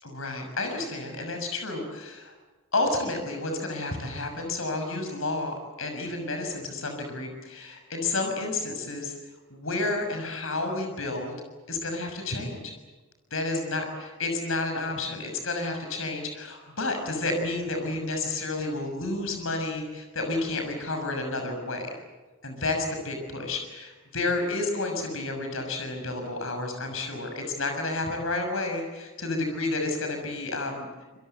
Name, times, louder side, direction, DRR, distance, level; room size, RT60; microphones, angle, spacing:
voice 1, 0.0-2.3 2.7-9.1 9.5-11.3 11.7-12.7 13.3-21.9 22.4-30.9, left 2 dB, 70° left, 5 dB, 6.4 m, -31 dB
26.5 x 23.0 x 8.1 m, 1.2 s
head